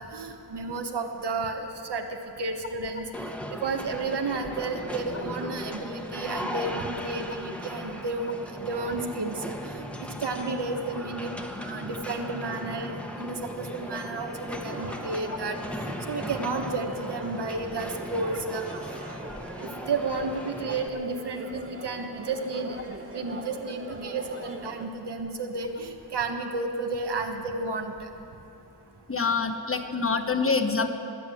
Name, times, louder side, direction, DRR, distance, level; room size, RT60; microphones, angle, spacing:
voice 1, 0.0-2.0 2.4-19.0 19.6-28.1, right 3 dB, 80° right, 4 dB, 1.4 m, -32 dB
sound 1, 3.1-20.9, equal, 5° left, 1.2 m, -38 dB
sound 2, 14.6-24.9, right 2 dB, 35° right, 1.8 m, -42 dB
voice 2, 29.1-30.9, left 4 dB, 35° left, 6 dB, 1.1 m, -25 dB
21.0 x 8.2 x 7.8 m, 2.7 s
wide cardioid pair, 70°, 40 cm